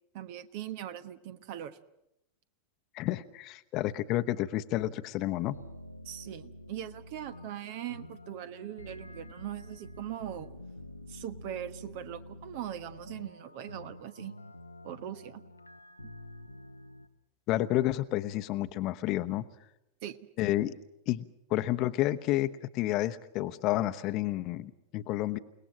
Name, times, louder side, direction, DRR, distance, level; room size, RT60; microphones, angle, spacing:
voice 1, 0.1-1.8 6.0-10.5 11.1-14.3 14.8-15.4 20.0-20.2, right 11 dB, 50° right, 12 dB, 1.2 m, -40 dB
voice 2, 2.9-5.5 17.5-19.4 20.4-20.7 21.1-25.4, left 15 dB, 40° left, 10 dB, 1.0 m, -30 dB
sound 1, 5.5-17.1, left 1 dB, 85° left, 1.1 m, -48 dB
29.5 x 19.0 x 7.4 m, 0.85 s
figure-of-eight pair, 90°, 0 cm